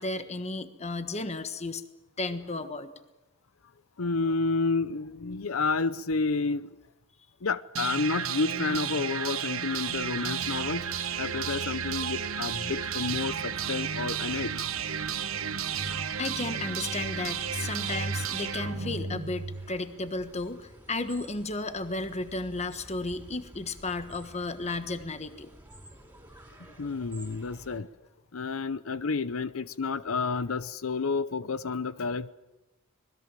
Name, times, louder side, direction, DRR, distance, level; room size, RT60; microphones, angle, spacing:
voice 1, 0.0-1.8 2.2-2.9 16.2-25.5, left 2 dB, 30° left, 1.4 m, -34 dB
voice 2, 4.0-6.7 7.4-14.5 26.8-27.9 28.3-32.3, left 4 dB, 70° left, 0.7 m, -30 dB
sound 1, 7.8-19.7, right 7 dB, 70° right, 1.4 m, -32 dB
sound 2, 9.7-27.8, right 1 dB, 10° right, 4.1 m, -52 dB
26.0 x 20.5 x 7.6 m
head